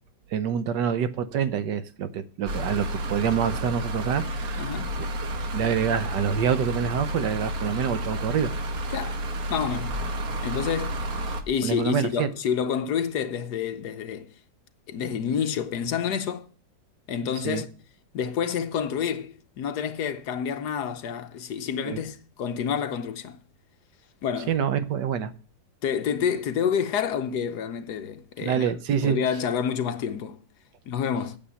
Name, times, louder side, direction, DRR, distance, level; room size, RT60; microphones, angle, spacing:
voice 1, 0.3-5.1 5.5-8.5 11.6-12.3 17.4-17.6 21.8-22.0 24.5-25.3 28.4-29.2, right 8 dB, 75° right, 1.4 m, -26 dB
sound 1, 2.5-11.4, right 1 dB, 60° right, 1.5 m, -31 dB
voice 2, 4.6-4.9 8.9-9.2 9.5-10.0 10.4-11.0 11.5-14.3 14.9-16.5 17.1-17.7 18.1-23.4 24.2-24.5 25.8-28.7 29.0-30.4 30.9-31.4, left 7 dB, 70° left, 1.4 m, -28 dB
8.8 x 7.3 x 6.9 m
omnidirectional pair, 1.9 m